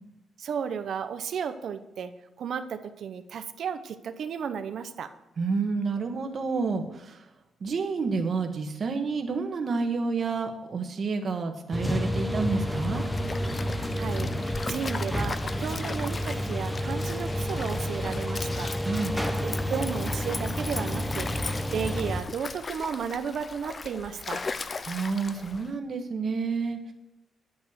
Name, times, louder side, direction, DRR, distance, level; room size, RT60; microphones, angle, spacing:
voice 1, 0.4-2.1 2.4-5.1 13.8-18.7 19.4-24.5, right 7 dB, 65° right, 9 dB, 0.9 m, -34 dB
voice 2, 5.4-7.3 7.6-13.0 18.8-19.2 24.9-26.9, right 4 dB, 45° right, 4 dB, 1.6 m, -29 dB
sound 1, 11.7-22.2, equal, 5° left, 1.0 m, -30 dB
Stream, 12.7-25.7, left 4 dB, 30° left, 0.5 m, -38 dB
10.5 x 8.9 x 6.5 m, 0.92 s
cardioid pair, 140°, 0 cm